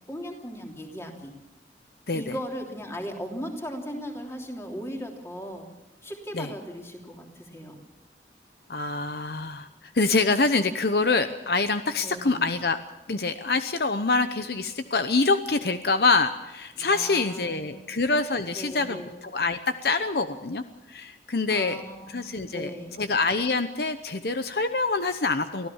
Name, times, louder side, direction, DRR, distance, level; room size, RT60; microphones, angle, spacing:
voice 1, 0.1-1.3 2.1-5.7 6.0-7.8 12.0-12.5 16.8-17.8 18.5-19.1 21.5-22.9, equal, 15° left, 1 dB, 3.2 m, -37 dB
voice 2, 8.7-12.8 13.1-20.6 20.9-21.8 22.1-25.7, left 3 dB, 60° left, 9 dB, 0.9 m, -25 dB
24.0 x 16.0 x 7.3 m, 1.0 s
head